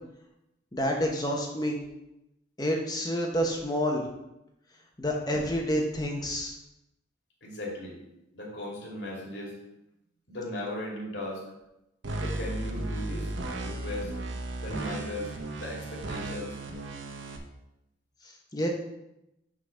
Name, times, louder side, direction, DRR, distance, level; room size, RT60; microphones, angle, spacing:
voice 1, 0.7-1.8 2.6-4.0 5.0-6.5 18.5-18.7, equal, 20° left, 0 dB, 1.0 m, -28 dB
voice 2, 7.4-8.0 8.3-9.6 10.3-11.4 12.1-13.3 13.6-14.1 14.6-16.6, left 1 dB, 65° left, -3 dB, 2.2 m, -37 dB
sound 1, 12.0-17.4, right 2 dB, 85° right, 0.9 m, -35 dB
6.4 x 4.0 x 6.2 m, 0.88 s
head